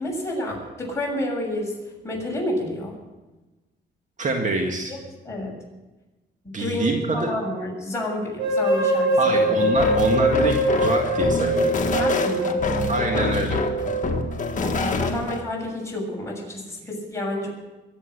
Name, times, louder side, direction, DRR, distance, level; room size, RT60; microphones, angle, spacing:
voice 1, 0.0-3.0 4.9-5.0 5.2-5.5 6.4-9.7 12.0-12.9 13.3-13.9 14.4-17.5, left 1 dB, 15° left, -2 dB, 7.2 m, -30 dB
voice 2, 4.2-4.9 6.5-7.3 9.2-11.7 12.9-13.6, right 2 dB, 40° right, 2 dB, 2.0 m, -25 dB
sound 1, 8.4-14.4, right 1 dB, 80° right, 3.4 m, -23 dB
sound 2, 9.8-15.4, left 4 dB, 40° left, 1.8 m, -26 dB
23.5 x 8.4 x 6.7 m, 1.1 s
cardioid pair, 105°, 19 cm